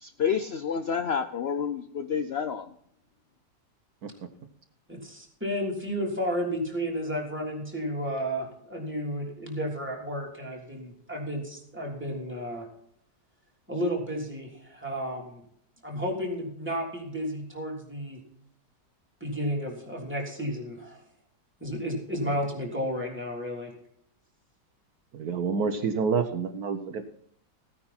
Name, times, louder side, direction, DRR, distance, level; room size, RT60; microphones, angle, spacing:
voice 1, 0.0-2.7, left 7 dB, 70° left, 0.6 m, -29 dB
voice 2, 4.9-12.7 13.7-15.4 15.8-18.2 19.2-21.0 21.6-23.7, equal, 5° right, 3.4 m, -32 dB
voice 3, 25.1-27.0, right 5 dB, 65° right, 1.4 m, -28 dB
16.0 x 9.7 x 4.3 m
omnidirectional pair, 1.9 m